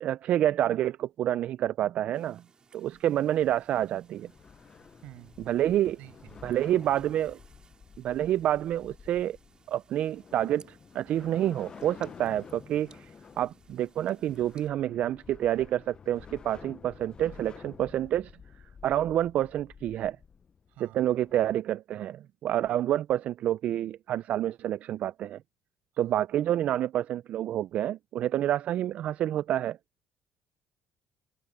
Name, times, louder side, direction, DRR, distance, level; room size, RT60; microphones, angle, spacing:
voice 1, 0.0-2.4 2.7-4.3 5.5-6.0 6.4-7.4 8.0-9.4 9.7-13.1 13.4-18.3 18.8-20.2 20.8-25.4 26.0-29.8, right 12 dB, 60° right, 0.3 m, -28 dB
sound 1, 2.1-14.7, right 5 dB, 30° right, 4.1 m, -61 dB
sound 2, 2.8-21.5, left 6 dB, 35° left, 0.7 m, -51 dB
voice 2, 5.0-5.4 6.0-6.6 20.7-21.0 25.9-26.2, right 16 dB, 80° right, 6.2 m, -51 dB
cardioid pair, 120°, 3 cm